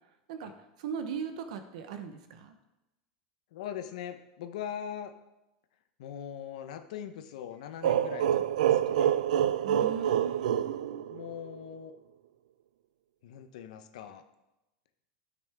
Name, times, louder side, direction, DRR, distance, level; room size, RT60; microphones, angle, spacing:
voice 1, 0.8-2.6 9.6-11.0, right 7 dB, 65° right, 8 dB, 0.9 m, -38 dB
voice 2, 3.5-5.1 6.0-9.1 11.1-11.9 13.2-14.2, left 9 dB, 65° left, 8 dB, 0.9 m, -41 dB
sound 1, 7.8-11.5, right 10 dB, 85° right, 0.4 m, -27 dB
14.0 x 6.1 x 3.5 m, 0.97 s
supercardioid pair, 170°, 4 cm